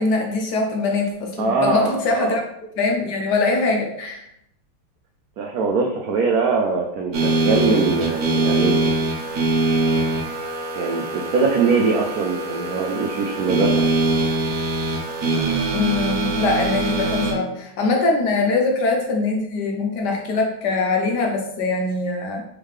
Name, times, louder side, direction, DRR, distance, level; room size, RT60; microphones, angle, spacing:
voice 1, 0.0-4.3 15.7-22.4, left 3 dB, 70° left, 1 dB, 1.1 m, -22 dB
voice 2, 1.4-2.3 5.4-8.8 10.8-13.9, right 4 dB, 85° right, 1 dB, 0.8 m, -22 dB
sound 1, 7.1-17.3, right 2 dB, 60° right, 1.0 m, -23 dB
3.6 x 3.5 x 3.2 m, 0.75 s
omnidirectional pair, 2.1 m